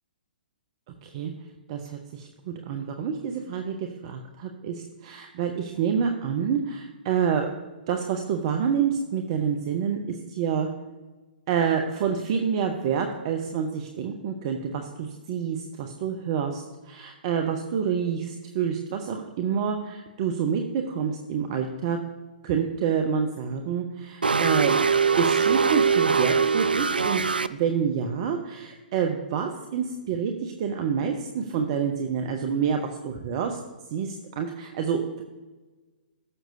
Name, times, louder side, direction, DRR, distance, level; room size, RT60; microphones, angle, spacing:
voice 1, 1.0-1.3 1.7-7.5 7.9-10.7 11.5-22.0 22.4-24.8 25.2-27.2 27.5-33.6 33.9-35.2, right 7 dB, 35° right, 4 dB, 0.9 m, -28 dB
sound 1, 24.2-27.5, right 5 dB, 75° right, 0.4 m, -22 dB
18.0 x 7.5 x 2.7 m, 1.2 s
figure-of-eight pair, 120°, 5 cm